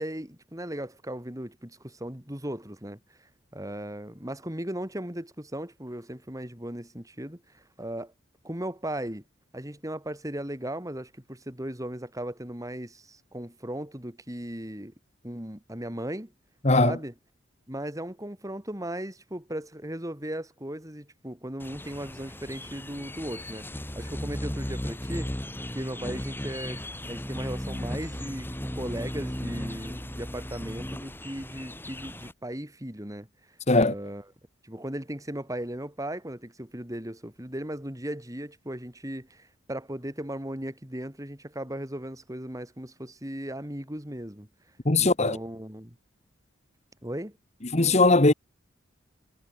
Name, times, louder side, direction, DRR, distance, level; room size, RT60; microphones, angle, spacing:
voice 1, 0.0-8.1 8.4-9.2 9.5-14.9 15.2-16.3 16.8-17.1 17.7-23.7 23.9-25.3 25.7-33.3 33.8-34.2 34.6-44.5 45.0-46.0 47.0-47.4, right 1 dB, 15° right, 3.2 m, -37 dB
voice 2, 16.6-16.9 33.7-33.9 44.8-45.4 47.7-48.3, left 2 dB, 35° left, 1.4 m, -19 dB
sound 1, 21.6-32.3, equal, 10° left, 5.5 m, -36 dB
head